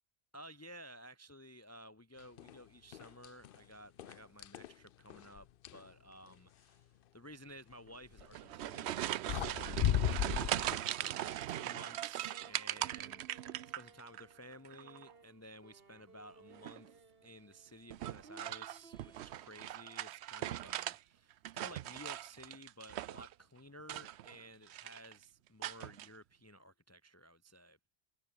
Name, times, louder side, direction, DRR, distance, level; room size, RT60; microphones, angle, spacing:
voice 1, 0.3-27.8, equal, 15° left, 0.8 m, -55 dB
sound 1, 2.4-2.6 2.9-3.6 4.0-5.9 8.1-8.4 9.0-9.1 9.3-10.8, left 11 dB, 60° left, 0.7 m, -35 dB
sound 2, 8.2-14.2 14.5-15.1 16.5-16.9 17.9-21.0 21.3-23.3 23.8-24.4 24.7-25.1 25.6-26.1, right 13 dB, 80° right, 0.8 m, -40 dB
sound 3, 8.5-19.7, right 4 dB, 60° right, 2.3 m, -61 dB
omnidirectional pair, 1.1 m